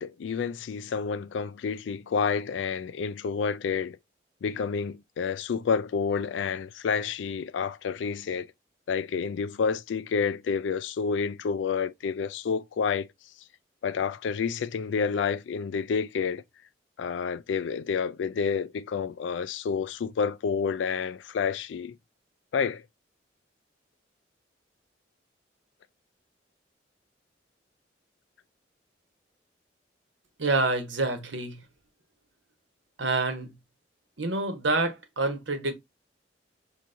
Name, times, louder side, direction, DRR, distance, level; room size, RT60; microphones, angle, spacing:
voice 1, 0.0-4.0 4.4-8.5 8.9-13.1 13.8-16.4 17.0-22.0 22.5-22.8, left 6 dB, 80° left, 0.3 m, -29 dB
voice 2, 30.4-31.6 33.0-33.5 34.2-35.7, right 2 dB, 80° right, 1.2 m, -27 dB
5.7 x 2.9 x 2.5 m
head